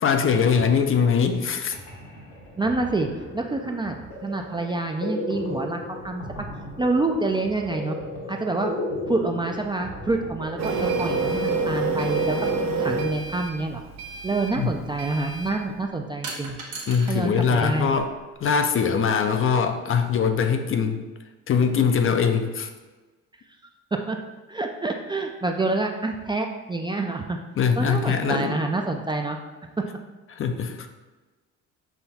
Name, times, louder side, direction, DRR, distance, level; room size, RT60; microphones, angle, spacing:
voice 1, 0.0-1.8 14.6-14.7 16.9-18.1 18.4-21.0 21.5-22.7 27.6-28.6 30.3-30.8, left 6 dB, 45° left, 7 dB, 0.5 m, -22 dB
sound 1, 1.7-12.3, left 1 dB, 90° left, 1.5 m, -36 dB
voice 2, 2.6-3.1 3.3-4.0 4.2-5.8 6.0-6.2 6.8-8.0 8.3-8.7 9.1-12.5 12.8-13.8 14.2-16.6 17.1-18.0 23.9-24.2 24.5-27.4 27.8-29.4, right 2 dB, 15° right, 3 dB, 0.3 m, -27 dB
Printer, 10.6-15.6, right 3 dB, 65° right, 0.6 m, -27 dB
sound 2, 16.2-17.2 17.5-18.4, right 3 dB, 90° right, 1.1 m, -37 dB
5.7 x 2.2 x 4.1 m, 1.2 s
cardioid pair, 90°, 30 cm